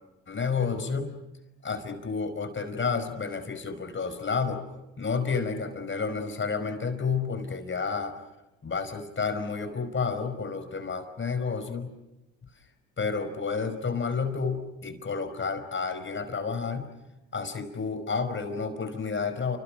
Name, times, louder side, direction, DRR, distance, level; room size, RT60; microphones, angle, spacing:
voice 1, 0.3-1.2 1.6-4.6 5.0-8.2 8.6-11.9 13.0-16.9 17.3-19.6, left 5 dB, 30° left, 9 dB, 5.1 m, -30 dB
30.0 x 27.5 x 6.2 m, 0.96 s
hypercardioid pair, 75°, 39 cm